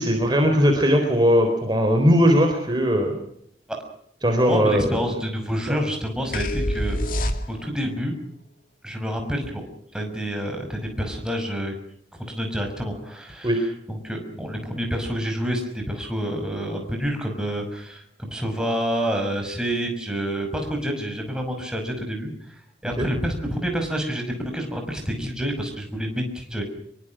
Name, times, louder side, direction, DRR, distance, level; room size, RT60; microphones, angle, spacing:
voice 1, 0.0-3.1 4.2-5.1 5.7-5.8 13.4-13.6 23.0-23.1, equal, 25° right, 4 dB, 4.0 m, -19 dB
voice 2, 4.4-7.0 7.5-8.2 8.8-9.6 9.9-11.7 12.3-26.6, equal, 5° right, 3 dB, 6.0 m, -28 dB
sound 1, 6.3-7.9, left 1 dB, 50° left, 2.4 m, -25 dB
25.0 x 23.5 x 6.3 m, 0.70 s
head